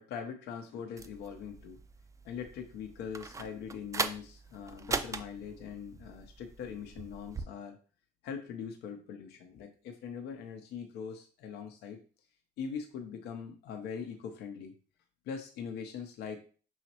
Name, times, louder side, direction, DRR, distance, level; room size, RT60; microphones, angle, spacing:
voice 1, 0.0-1.8 2.2-7.8 8.2-12.0 12.6-14.7 15.3-16.4, left 7 dB, 80° left, 4 dB, 0.6 m, -42 dB
sound 1, 1.0-7.5, right 4 dB, 20° right, 0.3 m, -40 dB
5.5 x 3.0 x 2.8 m, 0.39 s
cardioid pair, 110°, 17 cm